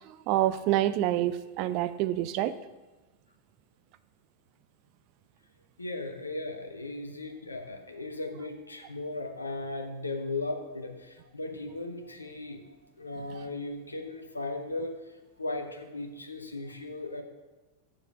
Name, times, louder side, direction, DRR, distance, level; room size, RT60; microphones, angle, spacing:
voice 1, 0.1-2.5, right 13 dB, 45° right, 14 dB, 0.4 m, -27 dB
voice 2, 5.8-12.6 13.0-15.1 15.4-17.2, left 2 dB, 80° left, 6 dB, 1.0 m, -37 dB
7.2 x 7.1 x 6.5 m, 1.1 s
figure-of-eight pair, 90°, 0 cm